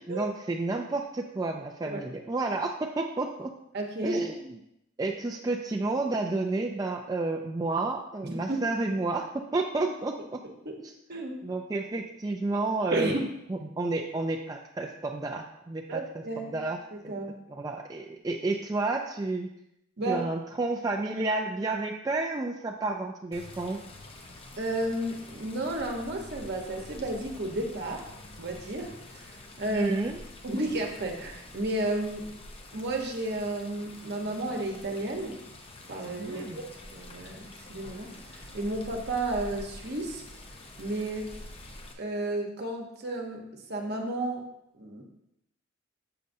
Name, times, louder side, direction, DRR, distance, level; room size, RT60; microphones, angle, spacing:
voice 1, 0.1-3.5 4.0-4.6 5.0-10.4 10.8-10.9 11.4-13.1 13.5-16.8 17.0-17.1 17.5-19.5 20.1-23.8 29.7-30.2 36.2-36.6, right 2 dB, 20° right, 0 dB, 0.3 m, -31 dB
voice 2, 3.7-4.2 8.2-8.6 10.6-10.8 11.1-11.4 12.9-13.3 13.6-13.7 15.9-16.5 16.9-17.4 20.0-20.3 24.6-28.1 28.4-29.9 30.4-32.3 32.7-35.4 35.9-36.6 36.9-40.2 40.8-41.3 42.0-44.5 44.7-45.0, right 1 dB, 55° right, 2 dB, 1.0 m, -32 dB
Water, 23.3-41.9, left 1 dB, 30° left, 0.7 m, -47 dB
6.7 x 6.3 x 2.7 m, 0.81 s
head